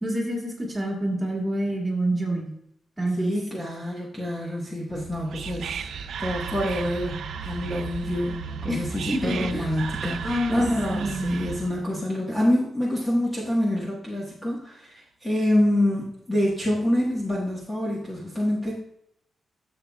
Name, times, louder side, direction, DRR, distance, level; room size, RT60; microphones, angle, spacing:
voice 1, 0.0-2.5 3.0-3.3 8.7-8.8 9.1-9.7 10.2-10.6 10.9-11.4, right 1 dB, 15° right, -2 dB, 2.2 m, -27 dB
voice 2, 3.2-18.7, left 1 dB, 10° left, -5 dB, 1.5 m, -26 dB
Whispering, 4.9-11.8, right 6 dB, 70° right, 0.5 m, -34 dB
12.0 x 7.2 x 2.4 m, 0.73 s
wide cardioid pair, 170°, 0 cm